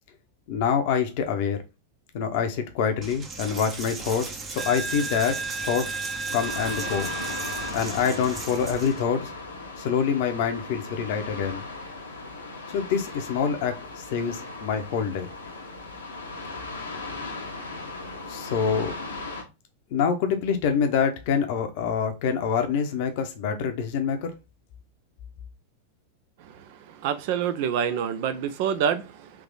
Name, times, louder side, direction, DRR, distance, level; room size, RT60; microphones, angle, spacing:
voice 1, 0.5-1.6 2.1-5.9 6.3-7.1 7.7-9.3 9.8-11.6 12.7-15.3 18.3-18.9 19.9-24.3, left 7 dB, 50° left, 0.8 m, -26 dB
Coin (dropping), 3.0-9.0, right 3 dB, 20° right, 0.8 m, -34 dB
sound 1, 6.4-19.4, left 3 dB, 75° left, 1.0 m, -37 dB
voice 2, 27.0-29.3, right 8 dB, 50° right, 0.5 m, -26 dB
3.6 x 2.9 x 3.9 m
figure-of-eight pair, 90°, 0 cm